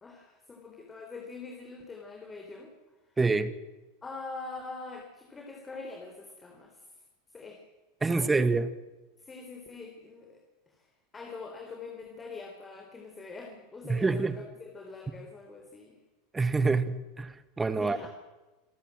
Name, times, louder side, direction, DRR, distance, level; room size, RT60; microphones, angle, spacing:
voice 1, 0.0-2.7 4.0-6.8 7.3-7.6 8.1-8.3 9.2-10.9 11.1-14.3 14.6-16.0 17.8-18.1, left 4 dB, 20° left, 3 dB, 3.7 m, -44 dB
voice 2, 3.2-3.5 8.0-8.7 13.9-14.4 16.3-18.1, right 3 dB, 15° right, 13 dB, 1.6 m, -27 dB
27.5 x 13.0 x 7.8 m, 1.2 s
hypercardioid pair, 95°, 0 cm